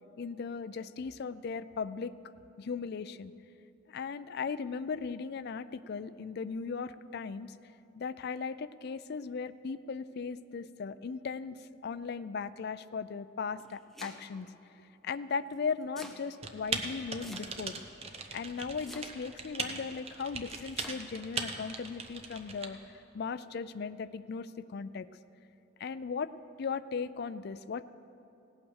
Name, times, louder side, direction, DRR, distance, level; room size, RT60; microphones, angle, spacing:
voice 1, 0.2-2.1 2.6-3.3 3.9-7.5 8.0-14.5 15.0-17.8 18.3-22.8 23.1-25.1 25.8-26.3 26.6-27.8, left 5 dB, 50° left, 14 dB, 0.3 m, -37 dB
Domestic sounds home sounds, 13.4-14.5 15.5-16.2 17.2-17.8 18.8-19.4 20.5-21.0, equal, ahead, 0.8 m, -48 dB
Typing, 16.4-22.7, right 4 dB, 30° right, 0.8 m, -39 dB
17.0 x 8.8 x 6.4 m, 2.9 s
head